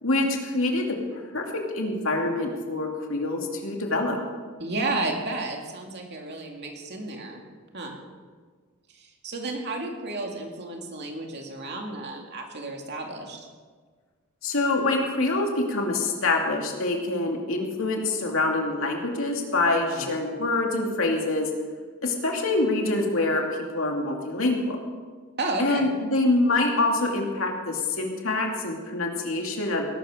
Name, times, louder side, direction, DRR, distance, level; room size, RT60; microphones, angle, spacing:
voice 1, 0.0-4.2 14.4-21.5 22.0-23.4 23.7-24.8 25.6-29.9, left 2 dB, 75° left, 1 dB, 2.7 m, -25 dB
voice 2, 4.6-7.4 7.7-8.0 9.0-13.4 19.7-20.1 25.4-25.9, right 2 dB, 55° right, 1 dB, 2.5 m, -32 dB
19.0 x 12.5 x 5.1 m, 1.5 s
head